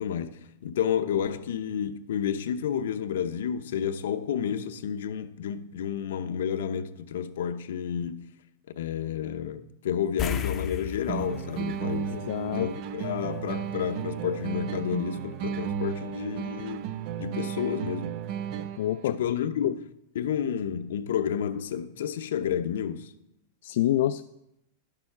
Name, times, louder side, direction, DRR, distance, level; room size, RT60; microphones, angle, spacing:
voice 1, 0.0-8.2 8.8-12.1 12.5-16.9 17.2-18.2 19.0-19.8 20.1-23.1, left 8 dB, 80° left, 0.8 m, -30 dB
sound 1, 10.2-13.0 13.3-13.5 16.3-16.4 16.8-16.9, left 8 dB, 15° left, 0.6 m, -35 dB
sound 2, 11.1-19.0, right 8 dB, 35° right, 0.4 m, -34 dB
voice 2, 12.1-12.7 18.8-19.2 19.6-19.7 23.6-24.2, left 13 dB, 65° left, 0.3 m, -27 dB
11.5 x 6.9 x 5.6 m
supercardioid pair, 170°, 0 cm